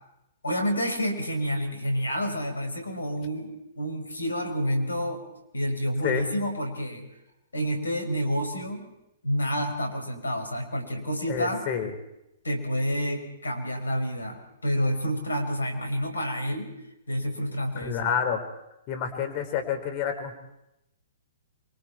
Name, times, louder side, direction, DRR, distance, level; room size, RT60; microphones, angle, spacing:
voice 1, 0.4-5.2 5.5-7.0 7.5-8.9 9.2-11.6 12.4-16.7 17.1-18.1, equal, 75° left, 5 dB, 5.5 m, -29 dB
voice 2, 11.3-11.9 17.8-18.4 18.9-20.4, left 8 dB, 35° left, 7 dB, 4.0 m, -28 dB
28.0 x 24.0 x 4.5 m, 0.86 s
figure-of-eight pair, 115°, 0 cm